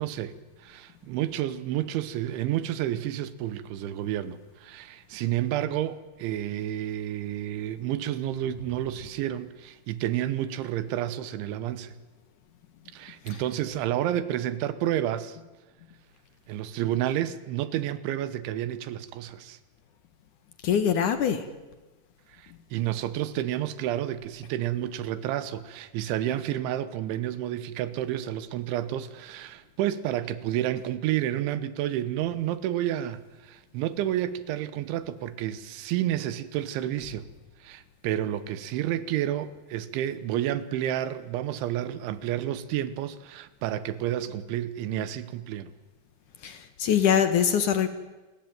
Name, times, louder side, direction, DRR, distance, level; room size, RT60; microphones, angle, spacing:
voice 1, 0.0-12.0 12.9-15.4 16.5-19.6 22.3-37.3 37.6-45.7, right 12 dB, 85° right, 3.5 m, -30 dB
voice 2, 20.6-21.5 46.4-47.9, left 8 dB, 65° left, 2.1 m, -23 dB
28.5 x 21.5 x 9.3 m
omnidirectional pair, 5.4 m